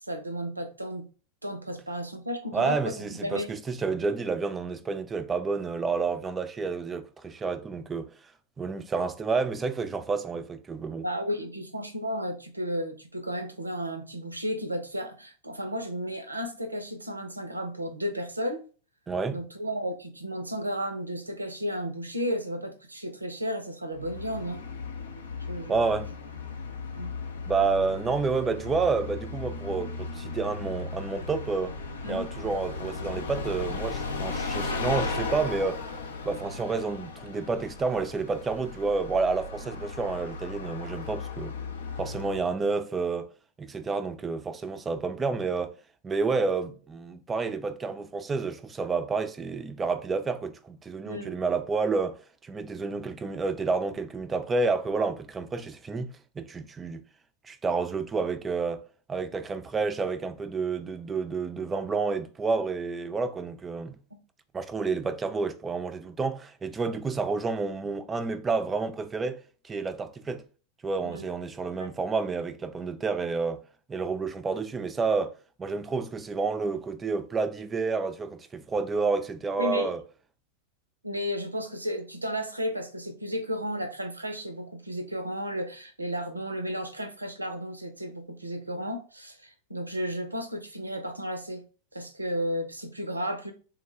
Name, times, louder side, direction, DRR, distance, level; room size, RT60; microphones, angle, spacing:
voice 1, 0.0-1.1 1.4-3.5 11.0-18.6 19.3-24.6 25.5-26.0 27.0-27.1 32.0-32.2 51.1-51.4 71.0-71.3 71.8-71.9 79.6-79.9 81.0-91.6 91.9-93.5, equal, 85° right, 0.5 m, -33 dB
voice 2, 2.5-8.1 8.6-11.0 19.1-19.4 25.7-26.1 27.5-31.8 32.1-35.8 36.2-41.5 42.0-43.3 43.6-45.8 46.0-52.2 52.4-57.0 57.4-58.8 59.1-64.0 64.5-70.4 70.8-73.6 73.9-75.3 75.6-80.0, right 4 dB, 15° right, 0.3 m, -29 dB
Bus, 23.9-42.5, left 4 dB, 65° left, 0.5 m, -36 dB
3.6 x 2.1 x 3.0 m
figure-of-eight pair, 90°, 0 cm